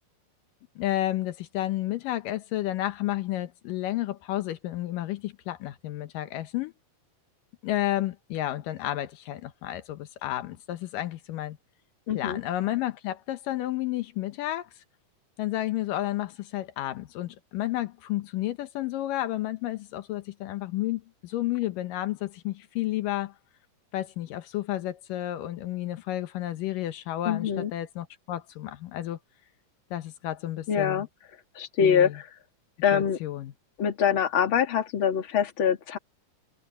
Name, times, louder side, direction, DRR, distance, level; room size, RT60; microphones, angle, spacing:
voice 1, 0.8-6.7 7.6-11.6 12.1-14.7 15.4-23.3 23.9-29.2 29.9-31.1 31.8-32.2 32.9-33.5, left 14 dB, 80° left, 2.6 m, -31 dB
voice 2, 12.1-12.4 27.2-27.7 30.7-31.1 31.6-32.3 32.8-33.2 33.8-36.0, left 8 dB, 40° left, 2.5 m, -24 dB
omnidirectional pair, 3.8 m